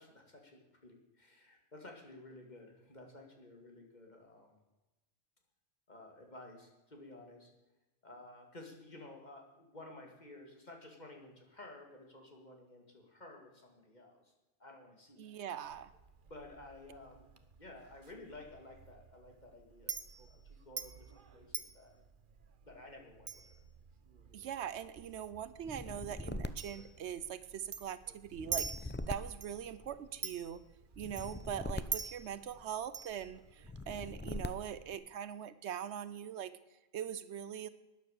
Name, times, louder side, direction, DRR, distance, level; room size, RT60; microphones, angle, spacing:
voice 1, 0.0-4.6 5.9-7.5 8.0-14.3 14.6-15.3 16.3-17.3 17.6-20.0 20.3-20.4 20.6-21.9 22.6-23.3 31.1-31.2, left 2 dB, 40° left, 2 dB, 2.4 m, -53 dB
voice 2, 15.2-15.9 24.3-30.6 31.0-36.5 36.9-37.7, right 9 dB, 75° right, 14 dB, 0.9 m, -42 dB
Chink clink, 15.6-33.9, right 6 dB, 50° right, 1.0 m, -47 dB
sound 1, 25.6-27.6 28.3-30.2 30.9-32.9 33.6-34.9, left 2 dB, 15° left, 0.4 m, -43 dB
12.5 x 9.5 x 6.6 m, 1.1 s
omnidirectional pair, 1.2 m